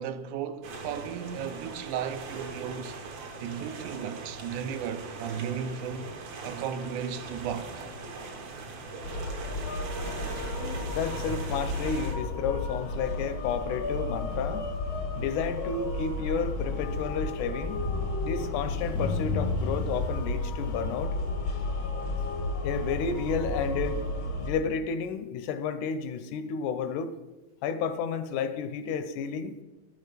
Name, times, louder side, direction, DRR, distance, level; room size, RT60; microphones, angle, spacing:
voice 1, 0.0-3.0 3.4-6.1 6.4-7.8 18.1-18.3, right 8 dB, 80° right, 2.1 m, -35 dB
sound 1, 0.6-12.2, right 3 dB, 65° right, 2.3 m, -40 dB
sound 2, 9.0-24.5, left 2 dB, 60° left, 0.9 m, -32 dB
voice 2, 10.9-14.7 15.2-17.8 18.2-21.1 22.6-24.0 24.4-27.1 27.6-29.5, left 6 dB, 85° left, 2.2 m, -31 dB
Rain, 11.3-14.8 15.4-15.5 16.0-22.5, equal, 5° right, 0.7 m, -44 dB
12.5 x 6.5 x 5.1 m
omnidirectional pair, 3.5 m